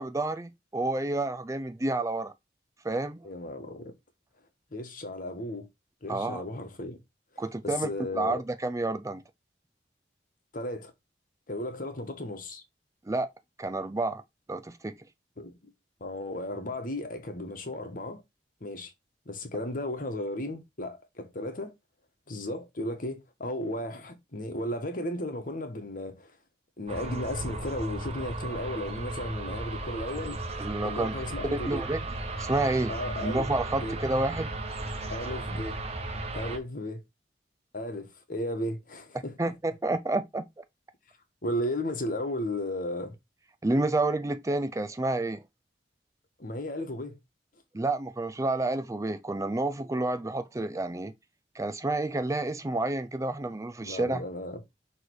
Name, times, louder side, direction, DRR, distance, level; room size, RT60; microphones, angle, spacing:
voice 1, 0.0-2.3 2.8-3.2 6.1-6.4 7.4-9.2 13.1-13.3 13.6-14.2 14.5-14.9 30.6-31.1 31.5-32.0 32.4-32.9 33.2-34.5 39.4-40.6 43.6-45.4 47.7-51.1 51.5-54.2, right 2 dB, 20° right, 0.4 m, -29 dB
voice 2, 3.2-3.9 4.7-5.7 6.0-7.0 7.3-8.4 10.5-10.9 11.5-12.6 15.4-15.7 16.0-18.2 18.6-18.9 19.2-21.7 22.3-26.3 26.8-30.4 30.8-31.9 32.9-33.5 33.8-34.0 35.1-35.8 36.3-37.0 37.7-39.5 41.4-43.1 46.4-47.2 53.8-54.6, left 1 dB, 50° left, 1.5 m, -35 dB
sound 1, 26.9-36.6, right 2 dB, 35° right, 1.1 m, -35 dB
6.3 x 3.3 x 4.7 m
head